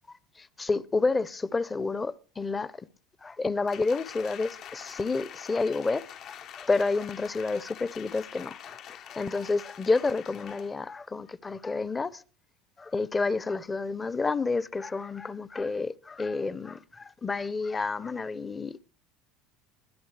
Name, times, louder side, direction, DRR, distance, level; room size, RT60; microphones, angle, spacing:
voice 1, 0.4-2.7 3.2-8.8 9.0-12.2 12.8-18.8, left 3 dB, 15° left, 0.7 m, -30 dB
Applause, 3.7-10.8 11.2-11.3, left 9 dB, 45° left, 0.8 m, -45 dB
21.0 x 10.5 x 3.3 m
supercardioid pair, 125°, 0 cm